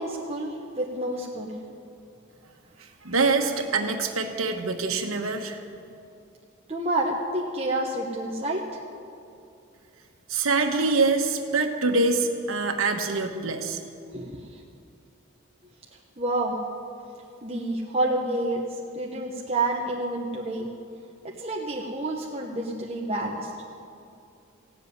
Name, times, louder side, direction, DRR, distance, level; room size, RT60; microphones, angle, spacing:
voice 1, 0.0-1.5 6.7-8.6 14.1-14.6 16.2-16.6 17.4-18.6 18.9-20.7 21.4-23.5, right 2 dB, 30° right, -3 dB, 1.0 m, -29 dB
voice 2, 3.0-5.6 10.3-13.8, right 3 dB, 90° right, 4 dB, 1.2 m, -25 dB
15.5 x 7.7 x 9.6 m, 2.5 s
head